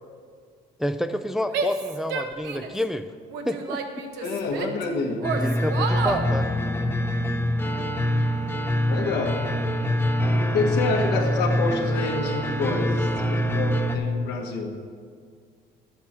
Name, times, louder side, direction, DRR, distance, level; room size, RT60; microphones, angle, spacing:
voice 1, 0.8-3.1 3.4-3.8 5.3-6.5, left 1 dB, ahead, 8 dB, 0.3 m, -29 dB
Female speech woman speaking / Yell, 1.5-2.8 3.3-4.8 5.2-6.3, right 5 dB, 90° right, 0.9 m, -30 dB
voice 2, 4.2-5.3 8.9-9.4 10.5-14.8, left 3 dB, 75° left, 2 dB, 1.4 m, -27 dB
sound 1, 5.2-14.0, equal, 15° left, 0.7 m, -25 dB
Bass guitar, 6.1-12.3, left 3 dB, 60° left, 1.2 m, -40 dB
11.5 x 8.2 x 4.3 m, 2.1 s
cardioid pair, 110°, 17 cm